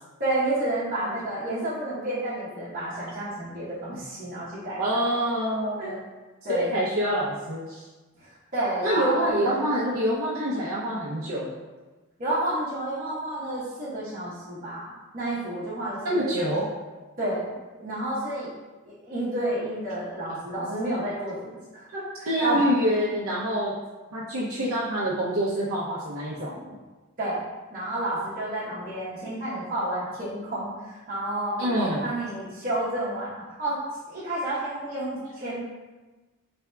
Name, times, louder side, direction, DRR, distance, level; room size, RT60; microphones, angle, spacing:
voice 1, 0.2-4.8 5.8-5.9 6.4-6.8 8.2-9.5 12.2-16.5 17.2-17.4 17.8-18.5 18.9-22.6 27.2-27.4 27.7-31.6 32.0-33.3 33.6-33.8 34.1-35.7, right 1 dB, 40° right, -11 dB, 1.0 m, -30 dB
voice 2, 4.8-6.0 6.5-7.8 8.8-11.5 16.0-16.7 22.3-23.7 24.1-26.7 31.6-32.1, equal, 80° right, -7 dB, 0.6 m, -26 dB
4.7 x 3.4 x 2.2 m, 1.2 s
head